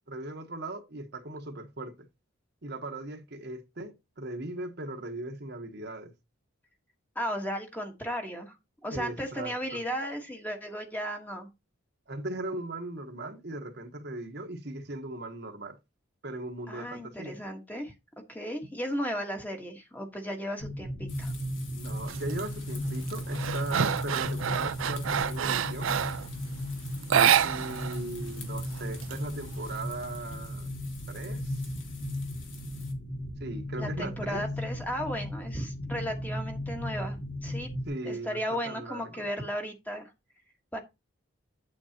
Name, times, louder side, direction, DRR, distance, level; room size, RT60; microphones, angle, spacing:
voice 1, 0.1-1.9 2.6-6.1 8.9-9.8 12.1-15.8 16.2-17.4 21.7-25.9 27.4-30.7 31.1-31.6 33.4-34.5 37.9-39.2, right 2 dB, 50° right, 1.2 m, -38 dB
voice 2, 7.1-8.6 8.8-11.5 16.7-17.9 18.3-21.3 33.8-37.2 37.4-37.7 38.0-40.1 40.7-40.8, equal, 10° left, 1.4 m, -35 dB
sound 1, 20.6-37.9, equal, 45° left, 2.3 m, -36 dB
sound 2, 21.1-32.9, left 6 dB, 60° left, 2.3 m, -50 dB
sound 3, 22.1-22.4 22.9-26.3 27.0-28.0 28.2-28.3 28.7-29.7, right 8 dB, 70° right, 0.5 m, -27 dB
8.8 x 8.2 x 2.9 m
head